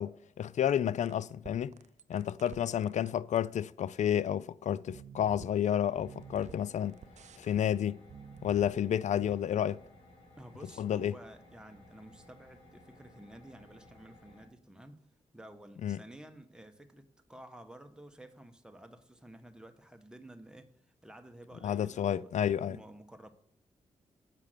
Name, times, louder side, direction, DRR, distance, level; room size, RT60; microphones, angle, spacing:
voice 1, 0.0-1.8 2.1-7.0 7.4-8.0 8.4-9.8 10.8-11.1 15.8-16.0 21.6-22.8, left 9 dB, 65° left, 0.4 m, -30 dB
sound 1, 0.7-3.4 4.9-9.4, right 8 dB, 60° right, 0.5 m, -52 dB
sound 2, 5.9-14.5, left 1 dB, 45° left, 3.5 m, -58 dB
voice 2, 10.4-15.0 15.3-20.7 21.0-22.3 22.6-23.3, right 1 dB, 5° right, 1.3 m, -52 dB
7.6 x 5.7 x 6.7 m
supercardioid pair, 45°, 13 cm